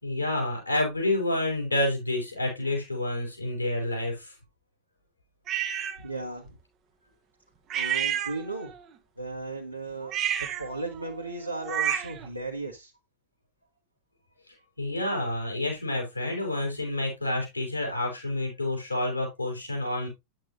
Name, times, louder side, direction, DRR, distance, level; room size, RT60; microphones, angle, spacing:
voice 1, 0.0-4.3 14.8-20.1, left 1 dB, 85° left, 4.2 m, -29 dB
sound 1, 5.5-6.0 7.7-8.8 10.0-12.3, right 10 dB, 30° right, 1.0 m, -30 dB
voice 2, 6.0-6.4 7.7-8.7 9.2-10.1 10.6-12.9, right 2 dB, 90° right, 1.3 m, -35 dB
9.2 x 7.7 x 2.7 m
figure-of-eight pair, 90°, 0 cm